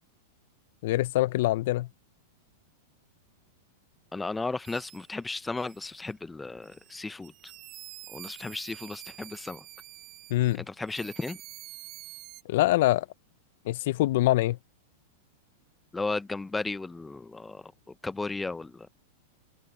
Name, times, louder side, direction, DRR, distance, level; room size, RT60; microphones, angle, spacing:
voice 1, 0.8-1.9 10.3-10.6 12.5-13.1 13.7-14.6, left 16 dB, 65° left, 0.6 m, -24 dB
voice 2, 4.1-7.3 8.1-9.6 10.5-11.4 15.9-18.9, left 3 dB, 10° left, 0.5 m, -35 dB
sound 1, 4.6-5.2 5.6-6.1 6.6-10.6 10.9-12.4, right 18 dB, 40° right, 3.2 m, -47 dB
hypercardioid pair, 130°, 0 cm